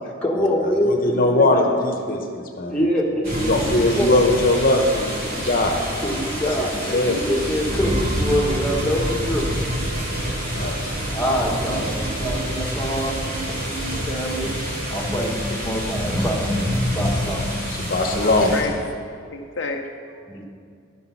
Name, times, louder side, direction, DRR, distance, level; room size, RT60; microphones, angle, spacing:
voice 1, 0.2-1.6 2.7-4.1 6.0-9.5 10.1-10.3 11.1-13.1 13.8-14.5 14.9-17.5 20.3-20.4, equal, 5° left, -3 dB, 1.2 m, -25 dB
voice 2, 0.8-2.9 3.4-5.8 6.9-7.2 10.5-10.8 17.8-18.5, left 2 dB, 45° left, 3 dB, 0.9 m, -20 dB
sound 1, 3.2-18.6, equal, 45° right, 2.9 m, -27 dB
sound 2, 3.3-17.3, right 4 dB, 30° right, 0.3 m, -36 dB
sound 3, 8.4-15.0, right 2 dB, 80° right, 0.8 m, -37 dB
voice 3, 14.4-15.0 18.2-19.0 19.3-20.4, left 3 dB, 65° left, 3 dB, 0.6 m, -33 dB
11.5 x 6.0 x 5.6 m, 2.3 s
head